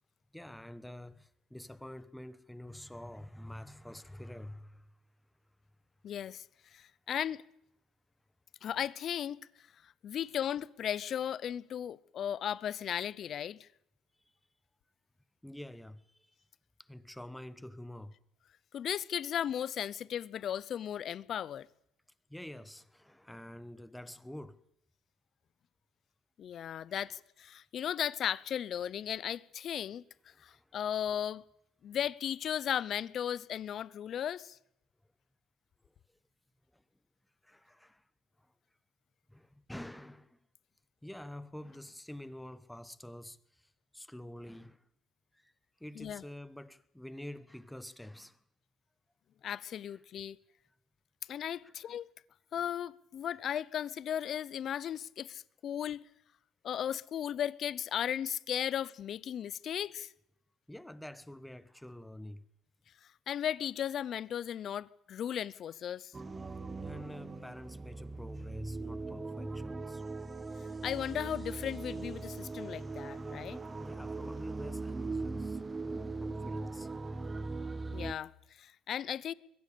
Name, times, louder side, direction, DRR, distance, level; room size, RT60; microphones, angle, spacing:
voice 1, 0.3-4.9 10.2-10.3 15.4-16.3 16.8-18.2 22.3-24.6 26.9-27.1 30.3-30.9 32.0-32.1 36.7-36.8 37.4-38.0 39.3-40.4 41.0-44.8 45.3-45.5 45.8-48.4 49.9-50.0 51.6-51.9 60.7-62.4 66.8-70.0 73.8-77.4, left 1 dB, 5° left, 1.0 m, -48 dB
voice 2, 6.0-6.4 6.7-7.4 8.6-9.4 9.8-13.7 18.7-21.7 26.4-30.0 30.4-31.4 31.8-34.6 46.0-46.2 49.4-50.4 51.3-52.1 52.5-56.0 56.6-60.1 63.3-66.1 70.8-73.6 77.9-78.3 78.6-79.3, left 9 dB, 45° left, 0.7 m, -36 dB
sound 1, 66.1-78.1, right 3 dB, 20° right, 1.4 m, -40 dB
22.0 x 15.0 x 8.6 m
cardioid pair, 125°, 0 cm